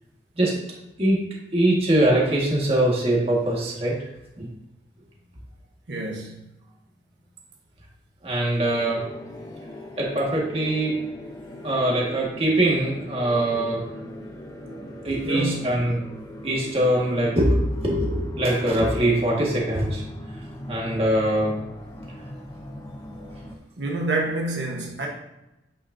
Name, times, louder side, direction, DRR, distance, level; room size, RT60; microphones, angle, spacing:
voice 1, 1.5-4.0 4.4-4.5 8.2-9.0 10.0-11.0 11.6-13.8 15.0-16.0 16.4-20.0 20.7-21.5, right 1 dB, 35° right, 1.8 m, -22 dB
voice 2, 5.9-6.4 15.2-15.9 23.8-25.1, right 2 dB, 80° right, 1.2 m, -28 dB
sound 1, 8.6-23.6, left 1 dB, 20° left, 0.7 m, -39 dB
8.4 x 6.4 x 2.7 m
head